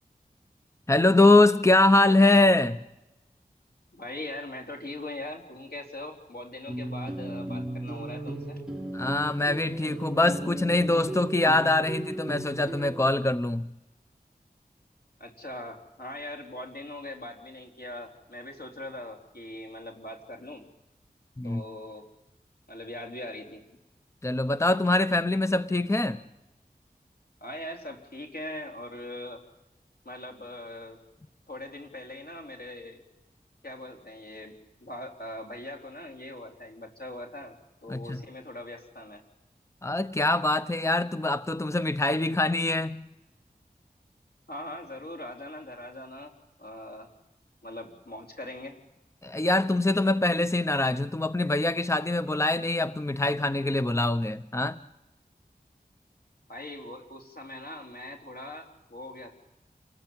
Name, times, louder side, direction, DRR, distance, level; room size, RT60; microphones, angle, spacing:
voice 1, 0.9-2.8 8.9-13.7 21.4-21.6 24.2-26.2 37.9-38.2 39.8-43.1 49.2-54.8, left 2 dB, 20° left, 0.8 m, -23 dB
voice 2, 3.9-8.6 15.2-20.6 21.4-22.1 22.7-23.6 27.4-29.4 30.0-31.0 31.5-33.0 33.6-39.2 44.5-46.3 46.6-47.1 47.6-48.8 56.5-59.4, left 1 dB, 85° left, 4.2 m, -41 dB
sound 1, 6.7-13.1, right 1 dB, 5° right, 5.9 m, -36 dB
28.5 x 20.0 x 9.0 m
wide cardioid pair, 55°, 16 cm